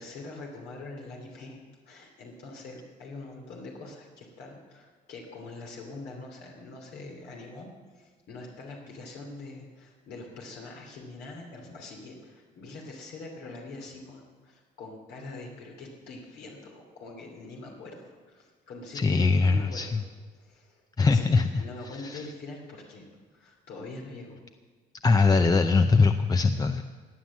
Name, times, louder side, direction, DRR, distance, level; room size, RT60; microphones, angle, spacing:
voice 1, 0.0-1.6 1.9-7.7 7.9-19.9 20.4-21.3 21.6-24.4, left 3 dB, 75° left, 0 dB, 2.9 m, -43 dB
voice 2, 18.9-20.0 21.0-21.5 21.8-22.2 25.0-26.8, left 4 dB, 20° left, 8 dB, 0.6 m, -22 dB
17.0 x 9.4 x 7.4 m, 1.4 s
cardioid pair, 110°, 17 cm